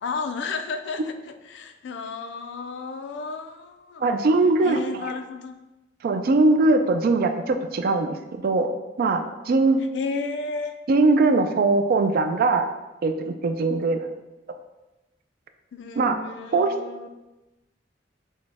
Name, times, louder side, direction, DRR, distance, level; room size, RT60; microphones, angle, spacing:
voice 1, 0.0-4.0 4.6-5.6 9.8-10.8 13.8-14.0 15.7-17.1, left 4 dB, 65° left, 8 dB, 0.4 m, -33 dB
voice 2, 4.0-5.1 6.0-8.7 9.0-9.8 10.9-12.7 13.0-14.1 16.0-16.2 16.5-16.7, right 3 dB, 50° right, 8 dB, 0.3 m, -21 dB
6.2 x 2.1 x 3.4 m, 1.0 s
head